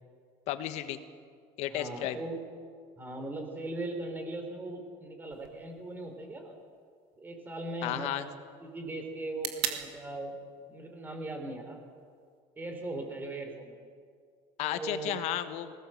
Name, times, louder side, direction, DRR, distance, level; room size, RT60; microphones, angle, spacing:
voice 1, 0.5-1.0 1.6-2.2 7.8-8.2 14.6-15.7, left 12 dB, 55° left, 10 dB, 1.4 m, -33 dB
voice 2, 1.7-2.4 3.0-6.6 7.2-8.2 8.6-10.3 10.7-11.8 12.6-13.7 14.6-15.2, right 2 dB, 15° right, 4 dB, 3.6 m, -39 dB
sound 1, 5.3-13.3, right 11 dB, 90° right, 2.3 m, -44 dB
21.0 x 18.0 x 7.8 m, 2.1 s
cardioid pair, 165°, 13 cm